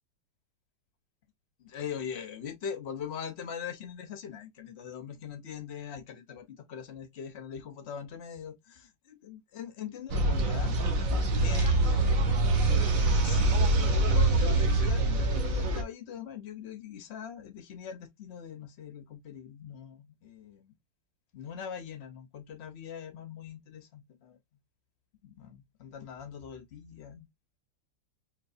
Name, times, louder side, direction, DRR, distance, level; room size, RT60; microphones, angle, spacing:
voice 1, 1.6-11.1 11.4-12.5 13.2-20.7 21.3-24.4 25.2-27.3, left 8 dB, 60° left, 0.6 m, -42 dB
sound 1, 10.1-15.8, right 2 dB, 55° right, 1.1 m, -25 dB
4.5 x 2.7 x 2.5 m
omnidirectional pair, 2.2 m